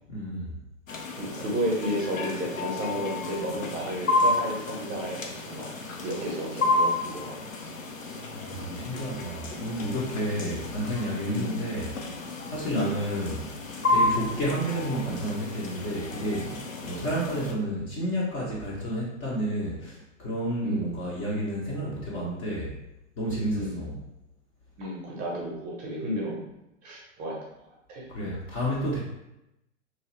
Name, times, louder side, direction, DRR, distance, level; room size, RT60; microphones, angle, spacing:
voice 1, 0.1-0.5 8.3-11.9 12.5-13.5 13.9-22.7 23.2-24.0 28.1-29.0, equal, 25° left, -5 dB, 0.5 m, -31 dB
sound 1, 0.9-17.5, left 2 dB, 90° left, 0.5 m, -31 dB
voice 2, 1.2-5.7 6.0-7.3 9.5-9.6 10.3-10.5 11.2-11.6 12.7-12.9 17.0-17.1 20.6-20.9 23.5-23.8 24.8-26.4 26.8-27.3 27.9-28.1, equal, 20° right, -3 dB, 0.6 m, -32 dB
2.9 x 2.2 x 3.0 m, 0.90 s
figure-of-eight pair, 105°, 38 cm